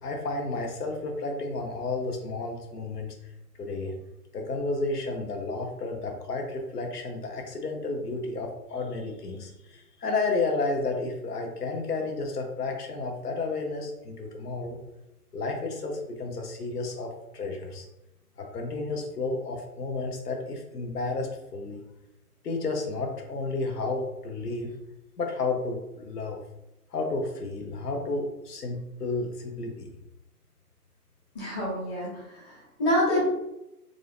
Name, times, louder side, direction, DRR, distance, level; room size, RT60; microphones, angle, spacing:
voice 1, 0.0-3.1 3.6-3.9 4.3-14.8 15.3-17.9 18.4-21.8 22.4-24.7 25.2-26.4 26.9-29.9, left 3 dB, 80° left, 2 dB, 0.9 m, -32 dB
voice 2, 31.3-33.3, left 1 dB, 15° left, -6 dB, 1.0 m, -27 dB
3.6 x 2.6 x 3.4 m, 0.90 s
figure-of-eight pair, 145°, 46 cm